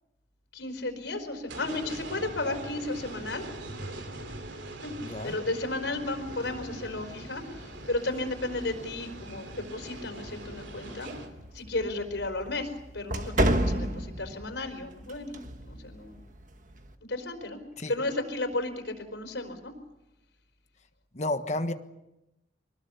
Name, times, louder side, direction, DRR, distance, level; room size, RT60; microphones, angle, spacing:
voice 1, 0.5-3.4 4.8-11.1 11.5-15.4 15.6-16.2 17.1-17.6 17.9-19.7, left 2 dB, 85° left, 5 dB, 4.6 m, -34 dB
sound 1, 1.5-11.3, right 2 dB, 85° right, 2.9 m, -42 dB
voice 2, 5.0-5.3 17.8-17.9 21.1-21.7, left 1 dB, 40° left, 8 dB, 1.3 m, -31 dB
sound 2, 6.1-16.9, right 1 dB, 45° right, 1.5 m, -35 dB
24.5 x 20.0 x 7.1 m, 0.92 s
head